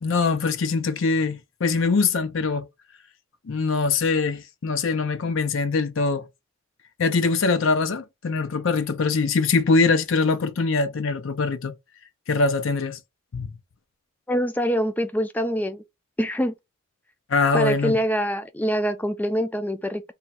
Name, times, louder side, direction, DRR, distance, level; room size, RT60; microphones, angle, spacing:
voice 1, 0.0-2.7 3.5-6.3 7.0-11.7 12.3-13.0 13.3-13.5 17.3-17.9, left 4 dB, 70° left, 0.5 m, -23 dB
voice 2, 14.3-15.8 16.2-16.5 17.5-20.0, equal, 10° left, 0.3 m, -24 dB
3.6 x 2.2 x 4.0 m
head